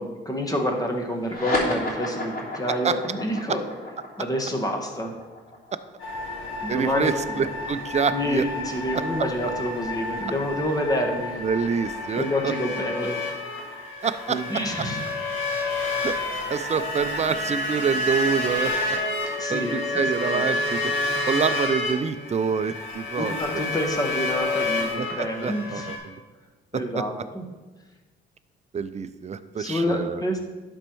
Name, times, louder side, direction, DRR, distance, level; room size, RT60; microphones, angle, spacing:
voice 1, 0.0-3.6 4.2-5.1 6.6-7.5 8.1-11.3 12.1-13.4 14.3-15.0 16.2-16.4 19.4-20.1 23.2-25.9 26.7-27.4 29.6-30.4, equal, 20° left, 2 dB, 1.6 m, -28 dB
sound 1, 1.2-8.0, left 2 dB, 50° left, 3.1 m, -33 dB
voice 2, 2.7-3.0 6.7-8.4 11.4-12.5 14.0-14.9 16.0-16.2 16.5-18.7 19.5-20.9 21.3-23.3 25.0-26.2 26.7-26.8 28.7-30.4, right 6 dB, 35° right, 12 dB, 0.5 m, -27 dB
sound 2, 6.0-26.0, left 2 dB, 85° left, 2.0 m, -29 dB
11.5 x 4.5 x 4.6 m, 1.2 s
cardioid pair, 90°, 20 cm